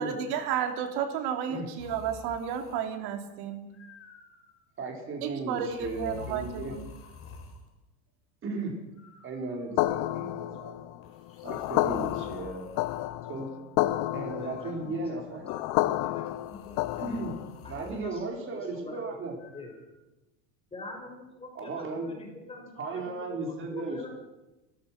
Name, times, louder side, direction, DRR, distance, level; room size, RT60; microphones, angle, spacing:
voice 1, 0.0-3.7 5.2-6.9, right 8 dB, 50° right, 6 dB, 3.4 m, -32 dB
sound 1, 1.8-3.0 3.7-4.6 5.7-7.7 8.9-9.9 11.0-13.1 14.3-15.0 16.2-18.1 19.4-19.9, left 4 dB, 25° left, 4.7 m, -49 dB
voice 2, 4.8-6.7 8.4-8.7 9.2-10.7 11.4-12.7 13.3-13.5 14.1-15.6 17.0-17.3 17.7-19.3 21.5-22.1 22.8-24.0, right 3 dB, 25° right, 1 dB, 4.9 m, -35 dB
sound 2, 9.8-17.6, left 16 dB, 45° left, 0.8 m, -30 dB
voice 3, 14.4-15.6 16.0-16.8 17.6-19.0 19.5-19.7 20.7-24.1, left 2 dB, 10° left, 2 dB, 5.3 m, -45 dB
29.0 x 15.0 x 6.1 m, 1.0 s
supercardioid pair, 155°, 49 cm